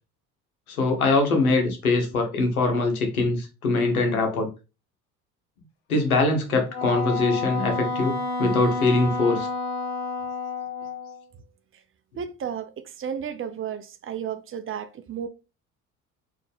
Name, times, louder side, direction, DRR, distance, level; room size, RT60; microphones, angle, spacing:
voice 1, 0.7-4.5 5.9-9.5, left 3 dB, 90° left, 1.1 m, -22 dB
Wind instrument woodwind instrument, 6.7-11.2, left 3 dB, 65° left, 1.2 m, -30 dB
voice 2, 12.2-15.3, right 8 dB, 30° right, 0.6 m, -33 dB
4.1 x 2.8 x 3.4 m
hypercardioid pair, 65°, 42 cm